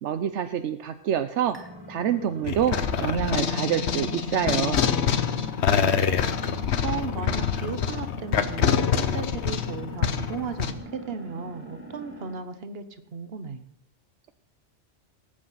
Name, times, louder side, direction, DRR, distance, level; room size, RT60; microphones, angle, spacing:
voice 1, 0.0-1.6 1.9-4.8, right 9 dB, 80° right, 10 dB, 1.0 m, -27 dB
sound 1, 1.5-12.4, right 1 dB, 10° right, 2.4 m, -42 dB
sound 2, 2.4-10.7, left 7 dB, 70° left, 1.1 m, -25 dB
voice 2, 5.7-6.3 6.8-12.8 13.1-13.6, right 5 dB, 60° right, 10 dB, 1.3 m, -35 dB
19.0 x 8.5 x 5.6 m, 0.76 s
omnidirectional pair, 1.2 m